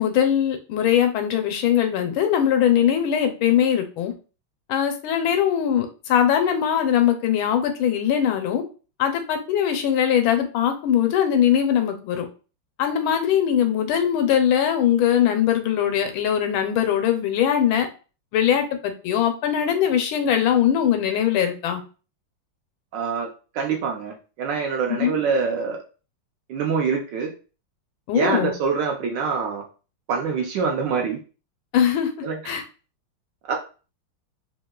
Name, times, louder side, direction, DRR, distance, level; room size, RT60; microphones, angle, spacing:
voice 1, 0.0-4.1 4.7-8.6 9.0-12.2 12.8-17.9 18.3-21.8 24.9-25.2 28.1-28.5 31.7-32.1 32.4-32.6, left 9 dB, 80° left, 6 dB, 1.4 m, -21 dB
voice 2, 22.9-23.3 23.5-25.8 26.5-27.3 28.1-29.6 30.1-31.2 32.2-32.5 33.5-33.6, right 5 dB, 70° right, 1 dB, 1.1 m, -25 dB
3.4 x 2.7 x 2.2 m, 0.34 s
omnidirectional pair, 2.3 m